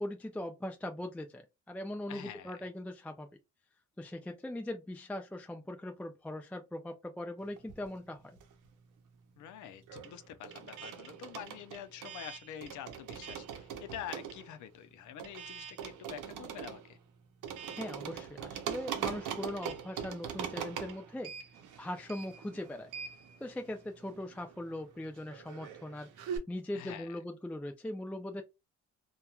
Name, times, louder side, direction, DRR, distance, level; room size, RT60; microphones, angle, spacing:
voice 1, 0.0-3.3 4.0-8.4 17.8-21.3 21.8-22.9 23.4-26.1 26.5-28.4, left 1 dB, 5° left, 0.4 m, -40 dB
voice 2, 2.1-2.7 9.4-17.0 26.7-27.2, left 10 dB, 75° left, 0.5 m, -46 dB
sound 1, 7.6-8.8 9.1-26.4, right 8 dB, 85° right, 0.7 m, -42 dB
2.9 x 2.2 x 2.3 m
cardioid pair, 90°, 30 cm